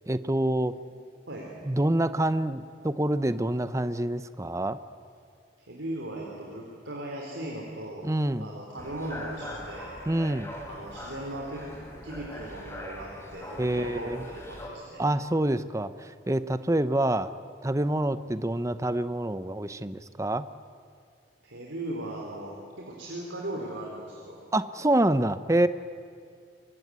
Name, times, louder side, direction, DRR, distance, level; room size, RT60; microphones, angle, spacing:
voice 1, 0.1-0.7 1.6-4.8 8.0-8.5 10.1-10.5 13.6-14.2 15.0-17.3 17.6-20.5 24.5-25.7, right 1 dB, 15° right, 13 dB, 0.7 m, -26 dB
voice 2, 5.7-8.1 8.4-9.9 10.7-11.8 12.0-15.0 21.4-24.4, right 1 dB, 90° right, -2 dB, 4.1 m, -38 dB
sound 1, 8.8-14.7, left 1 dB, 15° left, 3.6 m, -41 dB
25.0 x 22.5 x 9.5 m, 2.3 s
head